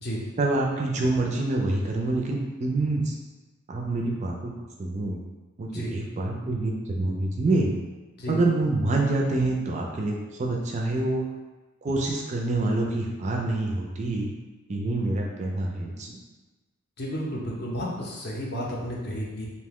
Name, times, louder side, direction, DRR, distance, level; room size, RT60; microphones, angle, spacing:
voice 1, 0.4-3.1 3.7-4.5 4.8-5.2 5.6-7.7 8.3-11.2 11.8-14.3 14.7-16.1, right 2 dB, 35° right, 0 dB, 0.3 m, -26 dB
voice 2, 17.0-19.5, equal, 50° left, -4 dB, 0.6 m, -32 dB
2.7 x 2.1 x 3.5 m, 1.2 s
head